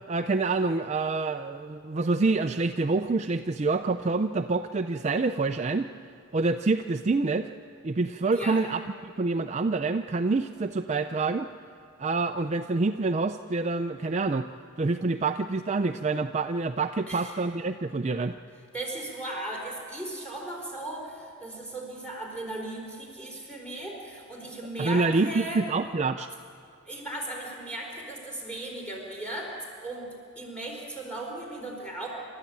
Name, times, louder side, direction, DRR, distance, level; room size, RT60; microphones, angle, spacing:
voice 1, 0.0-5.9 6.3-7.5 7.8-11.5 12.0-14.5 14.8-18.4 24.8-26.3, right 3 dB, 30° right, 7 dB, 0.4 m, -27 dB
voice 2, 8.3-8.6 17.1-17.3 18.7-25.7 26.9-29.5 29.8-30.1 30.4-32.1, right 1 dB, 5° left, -1 dB, 4.4 m, -37 dB
28.0 x 13.0 x 8.6 m, 2.3 s
head